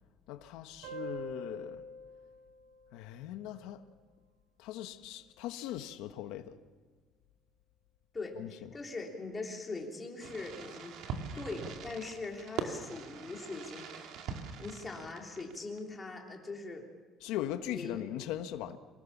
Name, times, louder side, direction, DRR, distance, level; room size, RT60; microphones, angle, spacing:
voice 1, 0.3-1.8 2.9-3.8 4.6-6.6 8.4-8.5 17.2-18.8, left 12 dB, 85° left, 1.2 m, -39 dB
sound 1, 0.8-4.0, right 1 dB, 90° right, 7.1 m, -46 dB
voice 2, 8.1-11.0 11.3-14.2 14.6-16.9 17.7-18.0, left 3 dB, 15° left, 3.3 m, -41 dB
Fireworks, 10.2-15.8, right 6 dB, 60° right, 2.4 m, -42 dB
26.5 x 18.0 x 7.2 m
cardioid pair, 165°, 0 cm